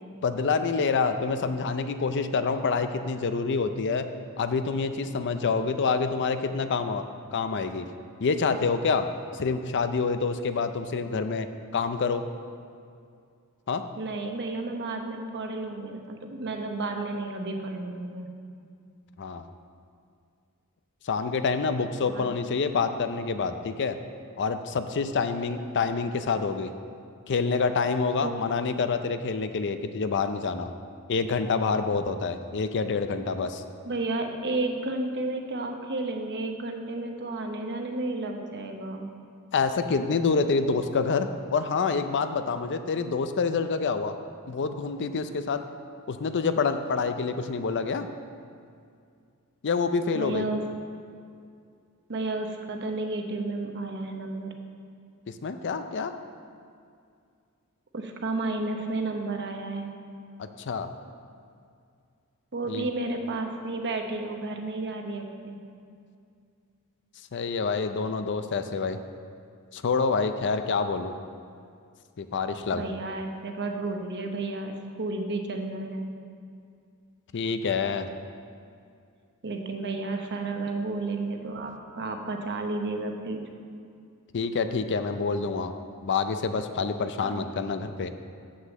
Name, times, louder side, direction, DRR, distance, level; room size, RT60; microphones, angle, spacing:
voice 1, 0.2-4.1 4.4-7.0 7.3-7.9 8.2-9.1 9.3-11.5 11.7-12.2 13.7-13.8 19.2-19.4 21.0-24.0 24.4-26.7 27.3-30.7 31.1-33.6 39.5-44.1 44.5-45.6 46.1-48.1 49.6-50.5 55.3-56.1 60.4-60.9 62.7-62.9 67.3-69.0 69.7-71.1 72.2-72.8 77.3-78.1 84.3-85.7 86.0-88.1, left 4 dB, 55° left, 9 dB, 0.5 m, -27 dB
voice 2, 14.0-18.3 22.1-22.4 25.6-25.7 28.2-28.3 33.9-39.1 50.1-50.6 52.1-54.6 57.9-60.0 62.5-65.6 72.7-76.2 79.4-83.4 87.2-87.5, right 2 dB, 50° right, 4 dB, 0.9 m, -32 dB
7.6 x 6.4 x 7.2 m, 2.3 s
head